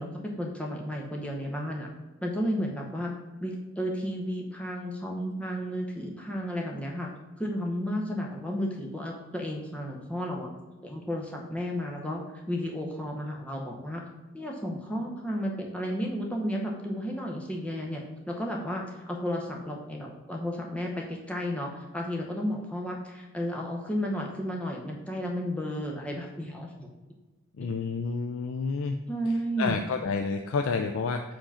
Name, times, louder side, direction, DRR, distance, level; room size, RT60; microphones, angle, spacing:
voice 1, 0.0-1.9 2.2-3.1 3.4-7.1 7.4-10.5 10.8-14.0 14.3-26.9 27.6-27.7 29.1-29.9, equal, 5° left, -1 dB, 0.8 m, -33 dB
voice 2, 27.6-29.0 29.6-31.2, left 4 dB, 65° left, 5 dB, 0.3 m, -29 dB
4.9 x 3.7 x 5.6 m, 1.2 s
head